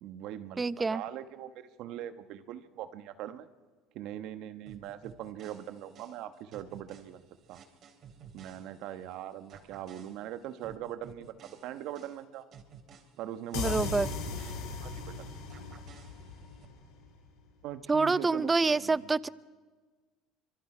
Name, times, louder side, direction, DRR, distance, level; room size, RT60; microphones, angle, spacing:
voice 1, 0.0-3.5 3.9-7.6 8.3-11.4 11.6-12.4 13.2-14.0 14.8-14.9 15.2-15.3 17.6-19.1, right 11 dB, 70° right, 10 dB, 1.2 m, -41 dB
voice 2, 0.6-1.0 13.6-14.1 17.9-19.3, right 3 dB, 20° right, 18 dB, 0.6 m, -27 dB
sound 1, 4.7-9.1 9.5-15.1 15.5-16.7, right 7 dB, 50° right, 3.4 m, -54 dB
sound 2, 13.5-17.1, left 5 dB, 75° left, 5.1 m, -37 dB
25.5 x 24.0 x 5.0 m, 1.4 s
supercardioid pair, 85°, 0 cm